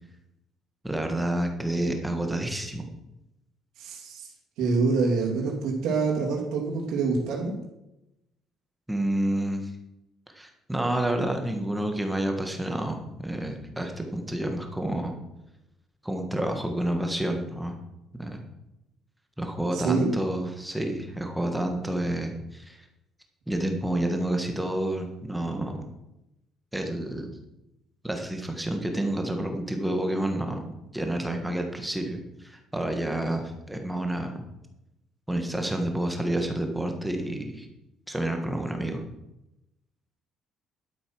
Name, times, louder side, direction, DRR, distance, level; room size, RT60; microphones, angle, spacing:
voice 1, 0.8-2.9 8.9-9.7 10.3-15.1 16.0-17.7 18.2-18.4 19.4-22.8 23.5-25.8 26.7-27.4 28.0-34.4 35.3-37.7 38.1-39.0, right 1 dB, 5° right, 4 dB, 1.5 m, -29 dB
voice 2, 3.8-4.3 4.6-7.6 19.7-20.1, right 4 dB, 80° right, -3 dB, 3.0 m, -26 dB
12.0 x 8.2 x 6.1 m, 0.91 s
cardioid pair, 175°, 0 cm